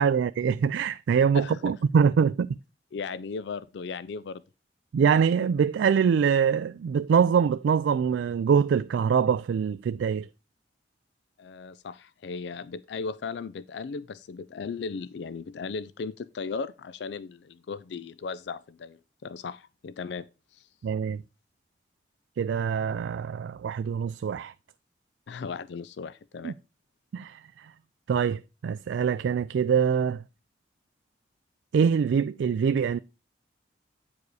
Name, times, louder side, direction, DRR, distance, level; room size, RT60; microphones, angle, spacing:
voice 1, 0.0-2.5 4.9-10.3 20.8-21.2 22.4-24.5 26.4-26.5 27.1-27.7 28.1-30.2 31.7-33.0, right 7 dB, 90° right, 0.3 m, -24 dB
voice 2, 2.9-4.4 11.4-20.3 20.5-20.7 25.3-26.5, left 5 dB, 80° left, 0.4 m, -36 dB
9.3 x 4.9 x 4.7 m
head